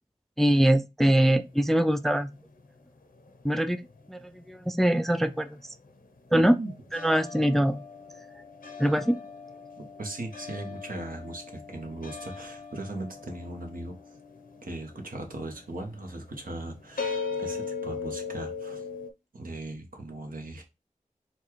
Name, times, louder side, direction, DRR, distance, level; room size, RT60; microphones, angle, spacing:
voice 1, 0.4-2.3 3.4-3.8 4.1-5.6 6.3-6.6 6.9-7.8 8.8-9.2, right 1 dB, ahead, 0.3 m, -23 dB
sound 1, 1.4-4.1 4.3-19.1, left 5 dB, 90° left, 0.8 m, -40 dB
voice 2, 6.3-6.7 9.8-14.0 14.6-18.8 19.3-20.6, right 2 dB, 75° right, 1.2 m, -38 dB
4.3 x 2.3 x 4.6 m
wide cardioid pair, 65°, 14 cm